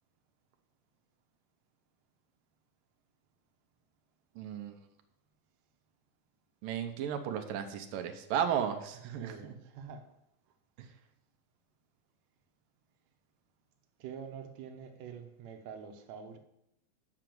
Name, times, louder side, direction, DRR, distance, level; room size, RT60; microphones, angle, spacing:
voice 1, 4.4-4.8 6.6-9.6, right 8 dB, 80° right, 6 dB, 2.5 m, -34 dB
voice 2, 8.9-10.0 14.0-16.4, right 7 dB, 65° right, 4 dB, 2.0 m, -46 dB
8.9 x 6.0 x 7.7 m, 0.82 s
omnidirectional pair, 3.9 m